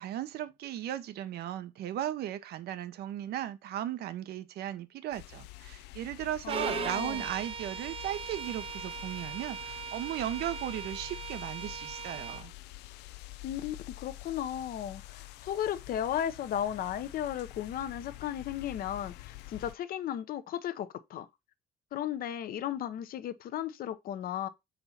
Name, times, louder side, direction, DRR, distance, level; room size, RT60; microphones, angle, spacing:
voice 1, 0.0-12.5, right 12 dB, 70° right, 0.8 m, -36 dB
sound 1, 5.1-19.8, left 17 dB, 85° left, 0.4 m, -47 dB
voice 2, 6.4-7.2 13.4-21.3 21.9-24.5, left 10 dB, 60° left, 0.7 m, -35 dB
Bowed string instrument, 6.5-12.4, right 7 dB, 35° right, 0.4 m, -39 dB
4.3 x 4.0 x 5.6 m
cardioid pair, 110°, 17 cm